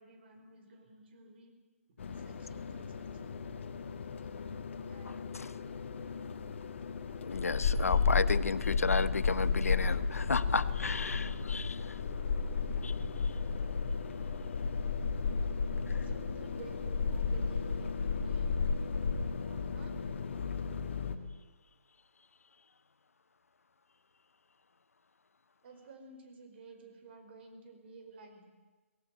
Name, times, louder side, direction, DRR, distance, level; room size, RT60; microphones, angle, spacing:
voice 1, 0.0-1.6 1.9-3.4 4.2-4.4 4.8-5.1 15.8-20.0 25.6-28.5, right 3 dB, 50° right, 7 dB, 4.8 m, -54 dB
sound 1, 2.0-21.1, left 5 dB, 55° left, 2.1 m, -33 dB
voice 2, 7.2-12.0 12.8-12.9, left 4 dB, 80° left, 16 dB, 0.9 m, -33 dB
22.0 x 18.5 x 9.1 m, 1.3 s
hypercardioid pair, 145°, 8 cm